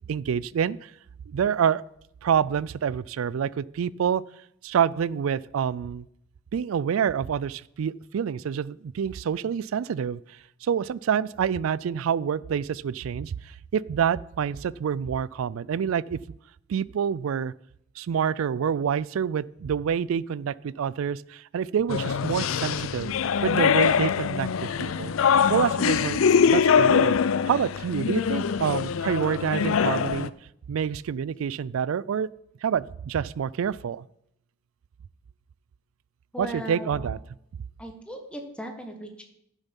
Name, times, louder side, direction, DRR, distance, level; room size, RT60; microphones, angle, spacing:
voice 1, 0.1-0.9 1.3-1.8 2.2-4.2 4.6-6.1 6.5-10.2 10.6-16.2 16.7-17.5 18.0-25.1 25.5-26.2 26.5-27.2 27.5-30.3 30.7-32.3 32.6-34.0 36.4-37.2, right 7 dB, 85° right, 21 dB, 0.3 m, -27 dB
sound 1, 21.9-30.3, left 6 dB, 80° left, 0.4 m, -23 dB
voice 2, 36.3-37.1 37.8-39.2, equal, 5° left, 4 dB, 1.4 m, -37 dB
11.5 x 7.1 x 5.4 m, 0.74 s
head